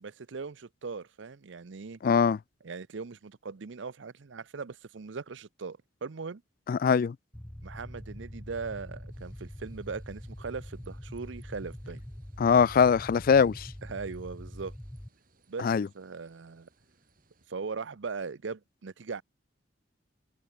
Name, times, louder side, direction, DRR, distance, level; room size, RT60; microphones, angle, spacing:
voice 1, 0.0-2.0 2.6-6.4 7.6-12.0 13.8-14.8 15.5-16.7 17.5-19.2, right 4 dB, 70° right, 0.6 m, -39 dB
voice 2, 2.0-2.4 6.7-7.2 12.4-13.7 15.6-15.9, left 6 dB, 45° left, 0.3 m, -22 dB
sound 1, 7.3-15.1, equal, 5° left, 0.6 m, -44 dB
sound 2, 9.1-17.5, right 3 dB, 45° right, 5.0 m, -68 dB
head